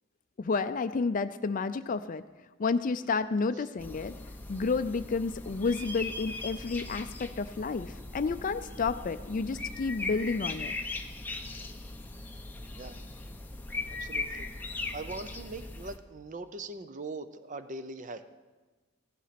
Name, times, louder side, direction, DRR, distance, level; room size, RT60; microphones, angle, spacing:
voice 1, 0.4-2.2 2.6-4.1 4.5-10.7, left 4 dB, 40° left, 10 dB, 0.4 m, -30 dB
sound 1, 3.8-16.0, left 3 dB, 10° left, 0.8 m, -39 dB
voice 2, 14.0-14.5 14.9-18.4, right 3 dB, 40° right, 11 dB, 0.6 m, -41 dB
16.5 x 11.5 x 5.8 m, 1.3 s
head